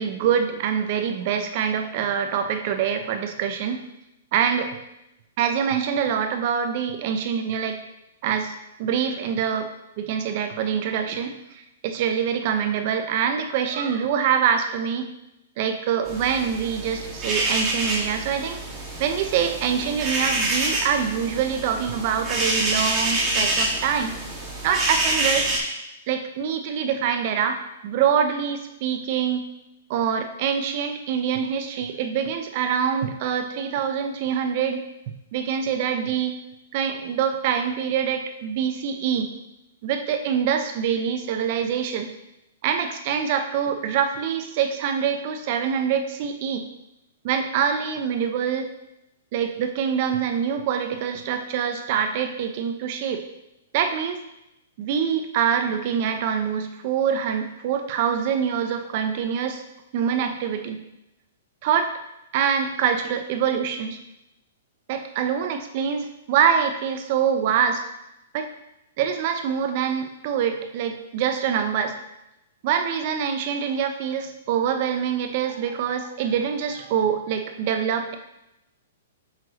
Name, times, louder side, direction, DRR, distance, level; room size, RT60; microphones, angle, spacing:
voice 1, 0.0-3.8 4.3-4.8 5.4-7.8 8.2-9.7 10.0-15.1 15.6-18.6 19.0-24.1 24.6-25.5 26.1-29.4 29.9-34.8 35.3-36.4 36.7-39.3 39.8-42.1 42.6-46.6 47.2-48.7 49.3-53.2 53.7-54.2 54.8-59.6 59.9-60.8 61.6-61.9 62.3-64.0 64.9-67.8 68.3-68.5 69.0-72.0 72.6-78.2, right 7 dB, 50° right, 7 dB, 0.9 m, -25 dB
sound 1, 16.0-25.6, right 2 dB, 20° right, 2.2 m, -27 dB
7.4 x 6.0 x 3.2 m, 0.87 s
hypercardioid pair, 130°, 0 cm